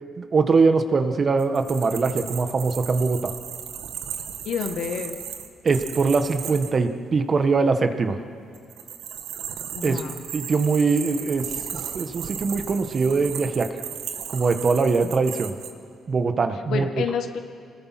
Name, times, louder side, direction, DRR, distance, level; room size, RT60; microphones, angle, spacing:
voice 1, 0.2-3.3 5.6-8.2 9.8-10.0 10.3-11.5 11.7-13.7 14.3-15.5 16.1-16.9, right 4 dB, 40° right, 8 dB, 1.5 m, -22 dB
sound 1, 1.4-6.7 8.5-15.7, right 9 dB, 85° right, 1.5 m, -36 dB
voice 2, 4.5-5.1 9.7-10.2 16.7-17.4, left 7 dB, 75° left, 6 dB, 1.8 m, -28 dB
27.0 x 20.0 x 6.1 m, 2.3 s
cardioid pair, 90°, 0 cm